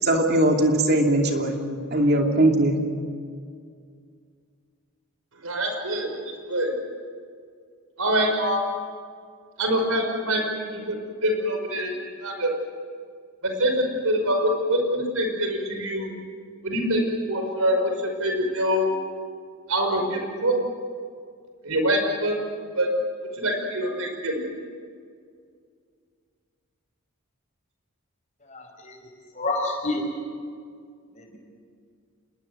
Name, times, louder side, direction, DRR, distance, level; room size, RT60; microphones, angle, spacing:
voice 1, 0.0-1.6 1.9-2.8, right 1 dB, 50° right, 2 dB, 2.8 m, -20 dB
voice 2, 5.4-6.1 6.5-6.7 8.0-8.6 9.6-11.0 11.2-11.9 12.2-12.5 13.6-16.1 16.6-17.0 17.3-17.9 18.2-18.9 19.7-20.5 21.6-22.3 22.8-22.9 23.4-24.4, equal, 85° right, 3 dB, 5.4 m, -24 dB
voice 3, 28.5-29.1 29.3-30.0 31.1-31.4, left 2 dB, 35° left, 2 dB, 5.4 m, -29 dB
27.0 x 21.0 x 8.0 m, 2.2 s
head